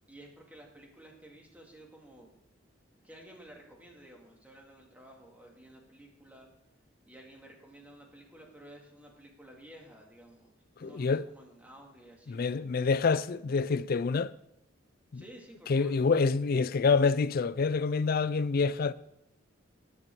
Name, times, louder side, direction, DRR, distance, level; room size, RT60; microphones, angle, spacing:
voice 1, 0.1-2.3 3.0-6.5 7.1-10.5 10.8-12.4 13.0-13.2 15.1-16.0, right 1 dB, 10° right, 2.2 m, -53 dB
voice 2, 10.8-11.2 12.3-14.3 15.1-15.2 15.7-18.9, left 4 dB, 50° left, 0.4 m, -27 dB
11.0 x 6.0 x 7.6 m
head